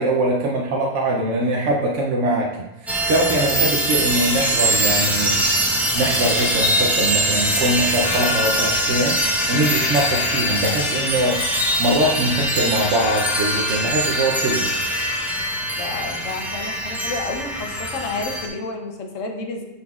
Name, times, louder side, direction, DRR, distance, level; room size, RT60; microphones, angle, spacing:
voice 1, 0.0-2.5 2.8-5.4 5.9-9.2 9.5-11.4 11.8-14.7, right 1 dB, 60° right, -2 dB, 0.9 m, -22 dB
sound 1, 2.9-18.5, right 1 dB, ahead, 0.4 m, -22 dB
voice 2, 15.7-19.6, left 3 dB, 60° left, 3 dB, 1.1 m, -30 dB
9.8 x 4.1 x 2.3 m, 0.94 s
omnidirectional pair, 1.6 m